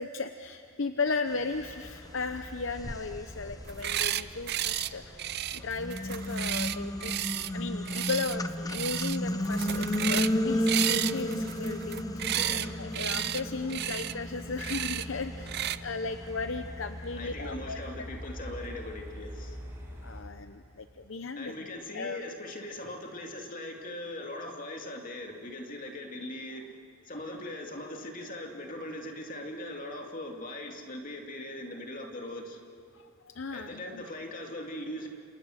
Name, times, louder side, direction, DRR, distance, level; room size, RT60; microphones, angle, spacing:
voice 1, 0.0-7.1 7.5-17.8 20.0-21.5 21.9-22.2 32.9-34.0, left 4 dB, 60° left, 8 dB, 0.8 m, -36 dB
Truck, 1.5-20.2, left 1 dB, 10° right, 6.1 m, -46 dB
sound 1, 2.0-2.1 2.7-5.0 5.6-16.9, left 1 dB, 15° left, 0.8 m, -33 dB
sound 2, 3.6-4.2 4.5-4.9 5.2-7.5 7.8-8.4 8.7-9.2 9.4-10.3 10.7-12.7 12.9-13.4 13.7-14.1 14.6-15.0 15.5-15.8, right 12 dB, 50° right, 0.5 m, -32 dB
voice 2, 12.3-12.8 17.1-19.6 21.3-26.7 27.0-32.6 33.5-35.1, left 1 dB, 40° left, 2 dB, 2.6 m, -40 dB
29.0 x 27.5 x 6.5 m, 2.5 s
head